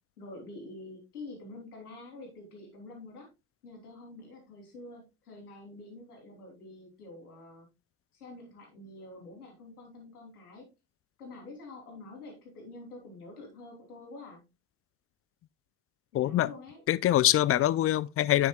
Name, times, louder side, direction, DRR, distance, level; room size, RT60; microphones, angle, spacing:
voice 1, 0.2-3.3 3.6-7.7 8.1-10.7 11.2-14.4 16.1-16.8, left 2 dB, 90° left, 3.4 m, -47 dB
voice 2, 16.1-16.5 16.9-18.5, left 13 dB, 30° left, 0.5 m, -24 dB
10.5 x 7.4 x 2.3 m
hypercardioid pair, 65°, 44 cm